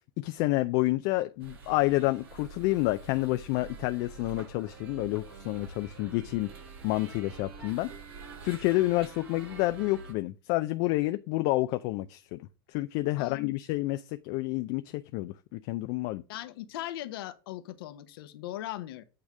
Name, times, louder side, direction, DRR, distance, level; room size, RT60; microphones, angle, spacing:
voice 1, 0.2-6.5 6.8-7.9 8.4-12.4 12.7-16.2, left 19 dB, 55° left, 0.5 m, -29 dB
sound 1, 1.4-10.1, right 4 dB, 80° right, 3.7 m, -46 dB
voice 2, 13.2-13.5 16.3-19.0, left 14 dB, 70° left, 1.0 m, -39 dB
8.8 x 3.4 x 6.2 m
hypercardioid pair, 105°, 13 cm